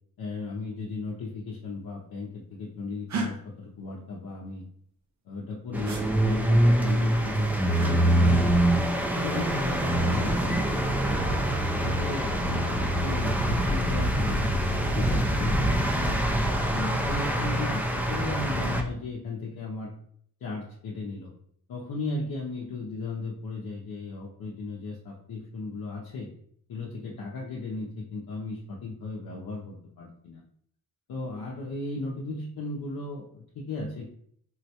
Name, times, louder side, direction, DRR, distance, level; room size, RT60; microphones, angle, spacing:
voice 1, 0.2-4.6 5.3-8.7 9.2-11.2 11.8-16.4 16.7-19.9 20.4-21.3 21.7-26.3 26.7-30.4 31.1-34.1, left 3 dB, 65° left, -3 dB, 0.6 m, -35 dB
sound 1, 3.1-3.3 5.9-6.0 7.7-8.0 9.8-10.2, right 2 dB, 50° right, 0.7 m, -32 dB
sound 2, 5.7-18.8, right 1 dB, 5° right, 0.3 m, -25 dB
3.8 x 2.1 x 2.8 m, 0.66 s
cardioid pair, 80°, 37 cm